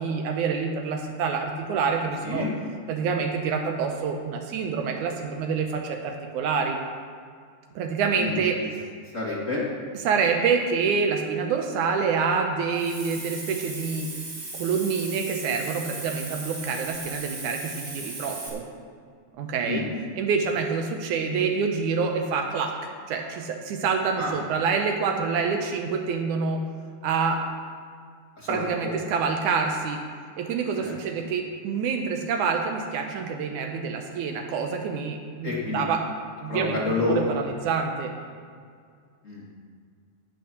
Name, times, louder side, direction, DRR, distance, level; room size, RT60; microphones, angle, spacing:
voice 1, 0.0-2.5 2.9-6.8 7.8-8.6 10.0-14.1 14.6-18.6 19.4-19.9 20.2-22.7 23.1-26.6 27.0-27.4 28.5-30.0 30.4-36.0 36.4-38.1, right 5 dB, 80° right, 3 dB, 2.3 m, -27 dB
voice 2, 8.2-8.7 9.1-9.6 19.7-19.8 24.2-24.4 28.4-28.9 30.8-30.9 35.4-35.9 36.5-37.2 39.2-39.5, left 3 dB, 25° left, -5 dB, 2.1 m, -29 dB
Hiss, 12.7-18.5, right 3 dB, 35° right, 3.5 m, -37 dB
17.0 x 5.7 x 6.1 m, 2.1 s
omnidirectional pair, 3.5 m